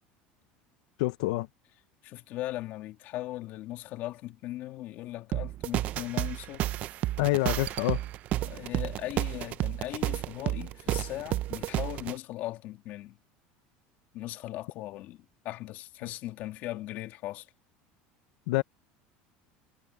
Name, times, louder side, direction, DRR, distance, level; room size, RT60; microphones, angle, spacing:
voice 1, 1.0-1.5 7.2-8.0 18.5-18.6, left 19 dB, 85° left, 0.7 m, -27 dB
voice 2, 2.0-6.7 8.4-13.2 14.1-17.5, left 15 dB, 50° left, 2.8 m, -38 dB
sound 1, 5.3-12.1, right 14 dB, 40° right, 0.5 m, -31 dB
cardioid pair, 165°, 4 cm